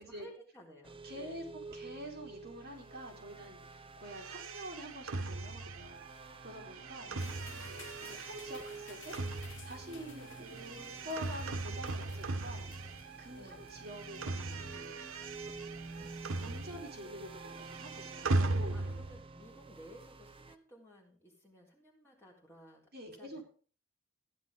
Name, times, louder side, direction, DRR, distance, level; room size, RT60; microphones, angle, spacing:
voice 1, 0.0-1.6 7.1-7.8 13.3-13.7 18.4-23.4, right 1 dB, 15° left, -3 dB, 3.7 m, -57 dB
sound 1, 0.8-20.6, right 3 dB, 25° right, 0.7 m, -51 dB
voice 2, 1.0-1.4 1.7-6.1 6.4-7.1 7.7-9.2 9.6-15.0 15.6-15.8 16.4-18.9 22.9-23.4, equal, 50° right, 0 dB, 3.3 m, -47 dB
sound 2, 4.1-13.3 13.6-17.1 17.3-19.2, right 2 dB, 75° right, 0.9 m, -39 dB
sound 3, 7.2-15.8, left 6 dB, 65° left, 1.7 m, -57 dB
15.0 x 10.5 x 3.7 m, 0.41 s
head